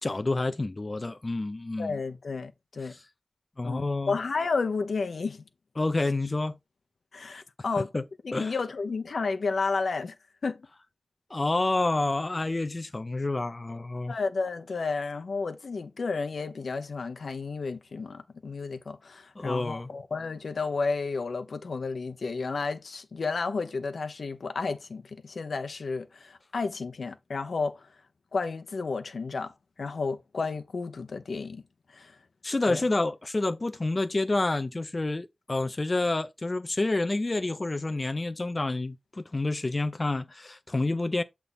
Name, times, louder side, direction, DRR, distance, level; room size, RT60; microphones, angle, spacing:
voice 1, 0.0-2.0 2.8-3.0 3.6-4.2 5.8-6.6 7.9-8.0 8.3-8.6 11.3-14.1 19.4-19.9 32.4-41.2, left 2 dB, 35° left, 0.4 m, -28 dB
voice 2, 1.8-3.0 3.6-5.5 7.1-7.9 8.2-10.1 10.4-10.7 14.1-27.9 28.3-29.5 29.8-31.6 31.9-32.2 32.7-32.8, left 4 dB, 80° left, 0.7 m, -32 dB
7.1 x 3.4 x 4.0 m
wide cardioid pair, 100°, 0 cm